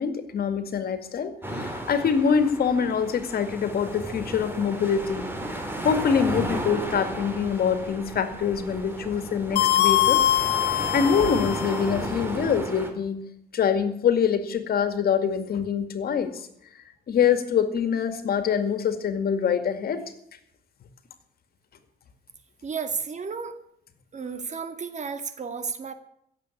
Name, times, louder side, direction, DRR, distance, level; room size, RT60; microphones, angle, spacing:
voice 1, 0.0-5.3 5.8-10.2 10.7-13.2 13.5-16.5 17.1-20.0, left 7 dB, 65° left, 10 dB, 2.1 m, -25 dB
sound 1, 1.4-12.9, right 1 dB, 15° right, 3.7 m, -34 dB
sound 2, 9.6-11.9, left 13 dB, 85° left, 1.1 m, -23 dB
voice 2, 22.6-23.6 24.1-25.9, right 5 dB, 45° right, 9 dB, 2.2 m, -32 dB
16.0 x 7.9 x 9.8 m, 0.71 s
cardioid pair, 85°, 17 cm